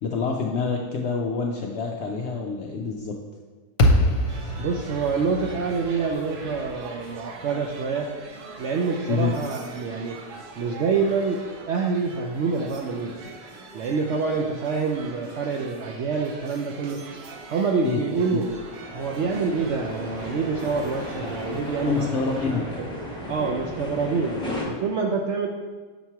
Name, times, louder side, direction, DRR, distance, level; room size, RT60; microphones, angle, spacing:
voice 1, 0.0-3.2 9.1-9.4 17.8-18.0 18.3-18.4 21.9-22.6, left 5 dB, 70° left, 0 dB, 0.6 m, -26 dB
sound 1, 3.8-8.1, left 1 dB, 50° left, 1.0 m, -25 dB
sound 2, 4.3-22.5, right 3 dB, 85° right, 1.3 m, -42 dB
voice 2, 4.6-8.1 8.6-10.2 10.6-13.2 13.7-17.0 17.5-18.5 18.9-22.9 23.3-25.5, right 4 dB, 70° right, 1 dB, 0.7 m, -26 dB
sound 3, 18.5-24.6, left 1 dB, 5° left, 0.9 m, -35 dB
7.2 x 3.0 x 5.6 m, 1.4 s
omnidirectional pair, 1.7 m